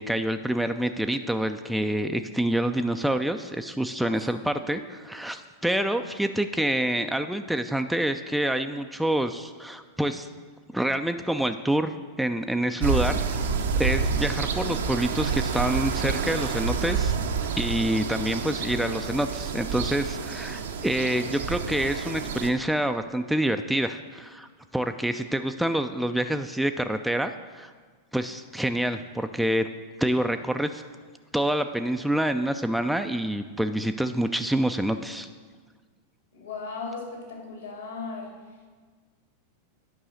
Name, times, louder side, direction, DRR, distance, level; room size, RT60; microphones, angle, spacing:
voice 1, 0.0-10.3 10.7-13.2 13.8-17.1 17.6-27.7 28.1-29.7 30.0-30.8 31.3-35.3, right 1 dB, ahead, 7 dB, 0.4 m, -27 dB
sound 1, 12.8-22.5, right 5 dB, 65° right, 0.7 m, -28 dB
voice 2, 36.3-38.3, left 4 dB, 70° left, -1 dB, 2.6 m, -37 dB
9.6 x 5.4 x 6.3 m, 1.5 s
figure-of-eight pair, 90°, 0 cm